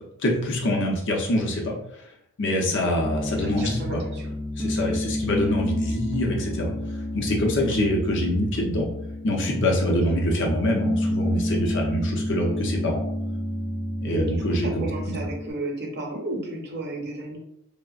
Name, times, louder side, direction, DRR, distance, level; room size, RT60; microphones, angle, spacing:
voice 1, 0.2-1.7 2.4-4.0 4.6-6.7 7.1-8.9 9.2-13.0 14.0-14.9, left 1 dB, 55° left, 0 dB, 0.6 m, -25 dB
Piano, 3.0-15.5, left 1 dB, 5° right, 0.3 m, -29 dB
voice 2, 3.4-4.3 4.8-5.0 7.7-7.9 10.1-10.2 14.1-17.4, right 2 dB, 50° right, 0 dB, 0.6 m, -34 dB
3.3 x 2.0 x 2.3 m, 0.76 s
head